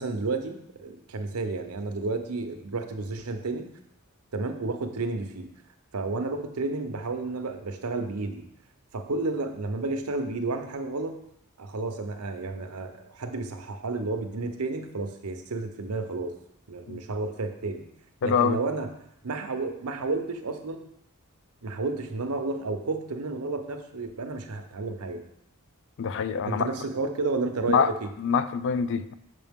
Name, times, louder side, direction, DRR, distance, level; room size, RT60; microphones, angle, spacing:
voice 1, 0.0-3.7 4.3-5.5 5.9-8.4 8.9-11.1 11.6-16.3 16.7-17.8 18.2-18.9 19.2-20.8 21.6-25.2 26.4-28.1, right 3 dB, 85° right, 7 dB, 0.7 m, -31 dB
voice 2, 18.2-18.6 26.0-26.7 27.7-27.9 28.2-29.3, left 6 dB, 55° left, 13 dB, 0.3 m, -25 dB
6.8 x 5.6 x 3.6 m, 0.77 s
head